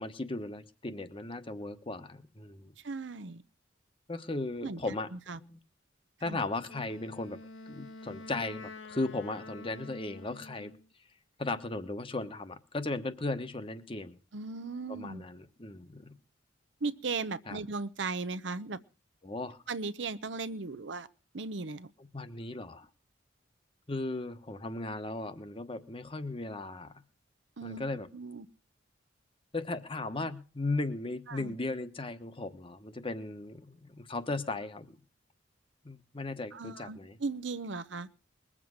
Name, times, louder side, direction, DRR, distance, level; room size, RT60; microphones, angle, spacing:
voice 1, 0.0-2.7 4.1-5.1 5.4-5.6 6.2-7.4 7.7-10.7 11.4-14.2 14.9-16.2 17.5-17.6 19.2-19.6 22.0-22.9 23.9-27.0 27.6-28.1 29.5-35.0 35.8-37.2, left 2 dB, 30° left, 10 dB, 1.1 m, -36 dB
voice 2, 2.8-3.4 4.6-4.8 5.1-5.4 6.3-6.4 14.3-15.2 16.8-18.8 19.7-21.1 21.3-21.9 27.6-27.8 28.1-28.5 31.3-31.5 36.5-38.1, right 4 dB, 65° right, 13 dB, 0.8 m, -37 dB
Wind instrument woodwind instrument, 6.7-10.9, left 2 dB, 80° left, 1.5 m, -47 dB
21.0 x 7.6 x 6.4 m, 0.36 s
head